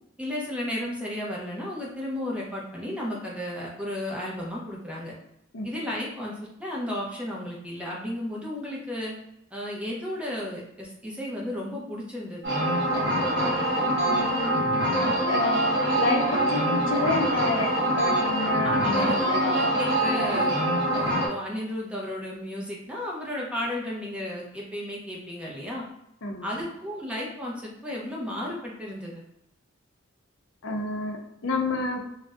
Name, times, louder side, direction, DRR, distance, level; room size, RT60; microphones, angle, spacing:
voice 1, 0.2-5.1 5.6-6.3 6.6-9.1 9.5-12.4 18.6-20.6 20.9-25.8 26.4-29.2, left 1 dB, 5° right, -4 dB, 0.6 m, -33 dB
sound 1, 12.4-21.3, right 1 dB, 60° right, 1.0 m, -24 dB
voice 2, 14.1-14.5 15.3-15.6 15.9-19.5 26.2-26.6 30.6-32.0, left 2 dB, 75° left, 1 dB, 0.6 m, -29 dB
2.5 x 2.1 x 3.4 m, 0.80 s
head